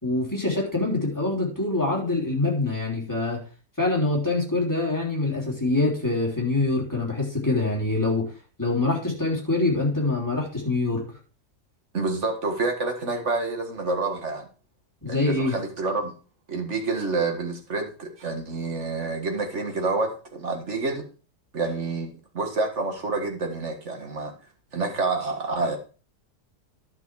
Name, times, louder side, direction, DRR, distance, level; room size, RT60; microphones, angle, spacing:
voice 1, 0.0-3.4 3.8-8.3 8.6-11.0 15.0-15.5, left 2 dB, 10° left, -3 dB, 3.3 m, -25 dB
voice 2, 11.9-14.5 15.1-16.1 16.5-21.0 21.5-24.3 24.7-25.8, right 3 dB, 50° right, 4 dB, 2.0 m, -28 dB
11.0 x 6.0 x 4.7 m, 0.36 s
omnidirectional pair, 1.6 m